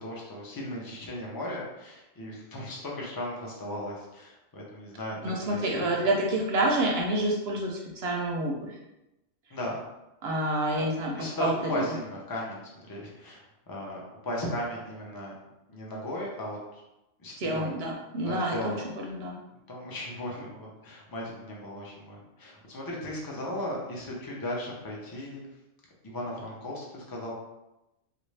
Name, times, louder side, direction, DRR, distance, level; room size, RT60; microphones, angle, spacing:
voice 1, 0.0-5.9 9.5-9.8 10.7-10.9 11.1-15.3 15.7-16.8 17.2-17.7 18.2-18.8 19.7-25.4 26.0-27.3, left 1 dB, 25° left, -3 dB, 0.5 m, -36 dB
voice 2, 5.2-8.8 10.2-12.0 17.4-19.4, right 1 dB, 60° right, -1 dB, 0.7 m, -28 dB
3.5 x 2.5 x 3.2 m, 0.94 s
omnidirectional pair, 1.3 m